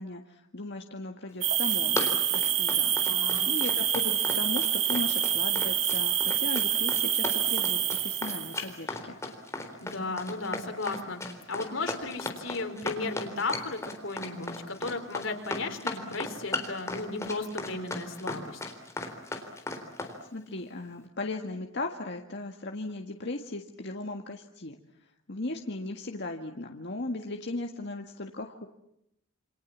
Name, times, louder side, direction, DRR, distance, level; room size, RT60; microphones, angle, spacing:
voice 1, 0.0-2.9 3.5-9.2 20.3-24.8 25.3-28.7, left 2 dB, 60° left, 3 dB, 1.8 m, -37 dB
Run, 1.4-20.1, left 2 dB, 15° left, 3.9 m, -36 dB
sound 1, 1.4-8.7, right 10 dB, 65° right, 3.4 m, -27 dB
voice 2, 3.0-3.5 9.8-18.6, left 3 dB, 90° left, 5 dB, 4.2 m, -35 dB
28.5 x 26.0 x 7.4 m, 0.78 s
head